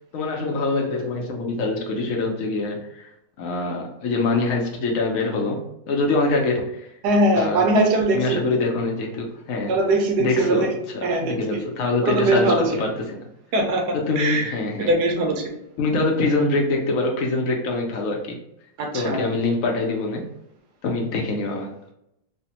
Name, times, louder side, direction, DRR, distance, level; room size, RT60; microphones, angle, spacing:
voice 1, 0.1-3.1 3.4-6.9 7.3-7.7 8.1-9.7 10.2-10.7 10.9-13.2 13.9-14.9 15.8-18.4 18.9-20.3 20.8-21.9, left 3 dB, 70° left, 0 dB, 0.9 m, -24 dB
voice 2, 7.0-8.5 9.7-10.7 11.0-11.3 12.0-12.7 13.5-13.8 14.2-14.5 14.9-15.6 18.8-19.3, right 2 dB, 90° right, 2 dB, 1.3 m, -21 dB
3.3 x 2.1 x 2.8 m, 0.81 s
omnidirectional pair, 1.7 m